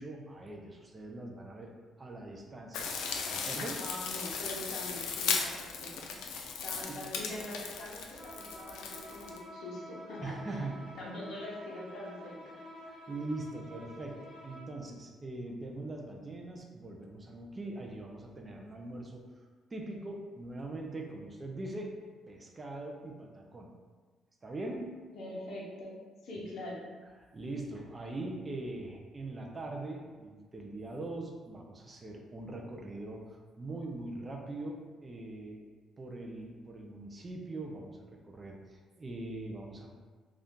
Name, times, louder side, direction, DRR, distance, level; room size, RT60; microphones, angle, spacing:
voice 1, 0.0-1.7 2.0-2.9 3.3-3.8 6.4-6.5 6.9-7.0 10.2-10.9 12.9-19.2 19.7-21.9 22.3-23.7 24.4-24.9 27.3-35.7 36.0-39.9, right 2 dB, 20° right, 0 dB, 0.4 m, -42 dB
sound 1, 2.7-9.4, left 5 dB, 90° left, 0.4 m, -36 dB
voice 2, 3.8-6.1 6.6-10.6 10.9-12.6 25.1-25.9 26.2-26.9, left 1 dB, 55° left, -5 dB, 0.8 m, -43 dB
Bowed string instrument, 8.1-14.8, left 1 dB, 20° left, 1.0 m, -49 dB
2.7 x 2.3 x 3.5 m, 1.4 s
cardioid pair, 150°, 0 cm